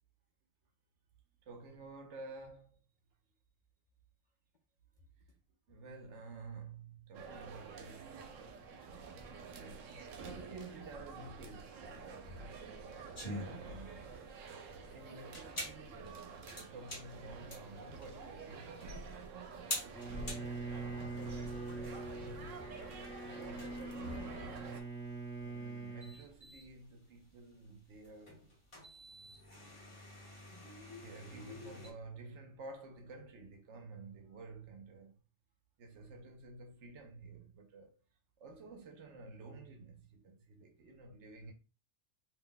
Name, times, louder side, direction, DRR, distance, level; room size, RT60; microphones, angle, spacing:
voice 1, 1.4-2.8 5.7-8.4 8.9-12.5 13.2-14.1 14.9-19.8 23.2-24.8 25.4-28.5 29.0-29.6 30.9-35.2 35.8-38.0 38.4-41.5, right 3 dB, 70° right, 0.9 m, -52 dB
sound 1, 7.1-24.8, right 4 dB, 90° right, 1.0 m, -48 dB
sound 2, 13.1-31.9, left 1 dB, 25° left, 1.0 m, -48 dB
Bowed string instrument, 19.9-26.2, right 3 dB, 5° left, 0.8 m, -43 dB
voice 2, 20.2-22.4 23.7-23.8, left 3 dB, 55° left, 0.5 m, -58 dB
2.6 x 2.1 x 3.8 m
omnidirectional pair, 1.3 m